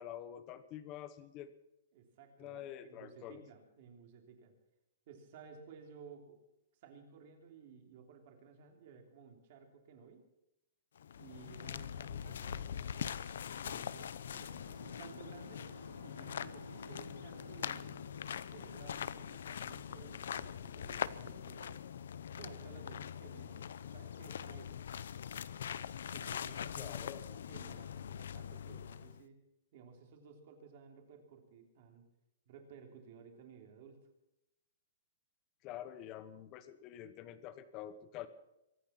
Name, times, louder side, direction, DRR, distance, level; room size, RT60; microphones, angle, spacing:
voice 1, 0.0-1.5 2.4-3.4 26.8-27.2 35.6-38.3, left 11 dB, 20° left, 13 dB, 1.0 m, -47 dB
voice 2, 1.9-4.6 5.1-6.4 6.8-10.2 11.2-15.6 16.0-18.0 18.5-21.8 22.3-24.8 26.1-29.4 29.7-32.1 32.5-34.0, right 6 dB, 35° right, 4 dB, 3.2 m, -56 dB
sound 1, 10.9-29.2, left 8 dB, 60° left, 0.8 m, -43 dB
Bowed string instrument, 14.3-19.4, right 1 dB, 90° right, 7.7 m, -55 dB
23.5 x 10.0 x 5.9 m, 0.89 s
hypercardioid pair, 180°, 0 cm